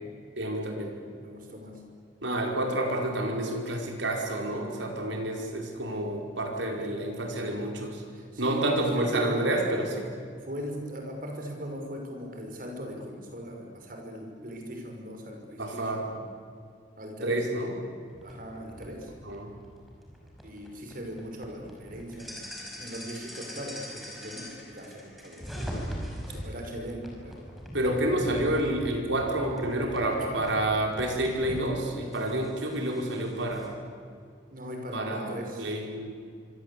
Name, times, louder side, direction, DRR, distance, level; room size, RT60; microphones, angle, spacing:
voice 1, 0.4-0.9 2.2-8.0 8.4-10.1 15.6-16.0 17.2-17.7 19.2-19.5 27.7-33.8 34.9-36.2, right 1 dB, 80° right, 2 dB, 5.3 m, -29 dB
voice 2, 1.2-1.9 6.6-7.0 8.1-9.5 10.4-16.3 17.0-17.4 18.2-19.1 20.4-25.6 26.0-27.5 30.2-30.5 34.5-35.8, equal, 45° right, 3 dB, 5.6 m, -39 dB
sound 1, 18.1-26.5 27.0-31.7 32.1-33.7, equal, ahead, 5.5 m, -41 dB
26.0 x 25.5 x 8.6 m, 2.2 s
head